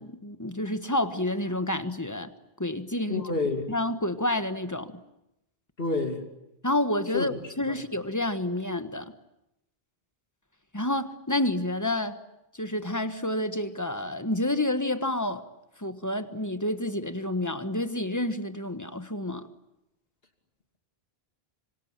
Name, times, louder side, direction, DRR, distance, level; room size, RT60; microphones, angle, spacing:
voice 1, 0.2-2.3 2.6-3.3 3.7-5.0 6.6-9.1 10.7-12.2 12.5-15.4 15.8-19.5, left 1 dB, 15° left, 1.4 m, -29 dB
voice 2, 3.1-3.7 5.8-6.2 7.1-7.3 7.7-7.8, left 3 dB, 65° left, 3.1 m, -28 dB
26.5 x 25.0 x 9.0 m
omnidirectional pair, 1.0 m